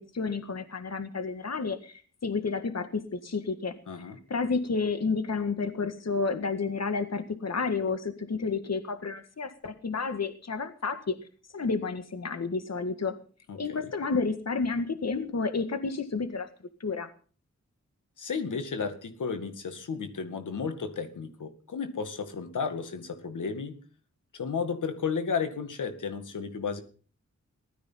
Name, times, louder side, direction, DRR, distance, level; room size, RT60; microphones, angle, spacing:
voice 1, 0.1-11.2 11.5-13.2 13.6-16.5 16.8-17.1, left 4 dB, 60° left, 9 dB, 1.8 m, -31 dB
voice 2, 3.9-4.2 13.5-13.8 18.2-23.8 24.3-26.8, left 5 dB, 85° left, 8 dB, 2.1 m, -33 dB
16.5 x 13.0 x 5.7 m, 0.41 s
cardioid pair, 45°, 30 cm